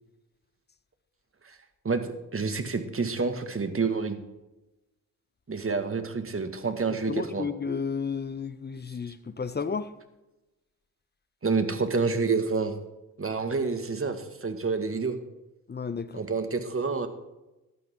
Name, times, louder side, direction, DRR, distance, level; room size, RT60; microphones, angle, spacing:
voice 1, 1.8-4.2 5.5-7.5 11.4-12.7 13.2-15.2 16.1-17.1, right 4 dB, 35° right, 2.1 m, -28 dB
voice 2, 7.1-9.9 15.7-16.2, left 5 dB, 25° left, 1.0 m, -32 dB
15.0 x 11.5 x 3.9 m
supercardioid pair, 50°, 39 cm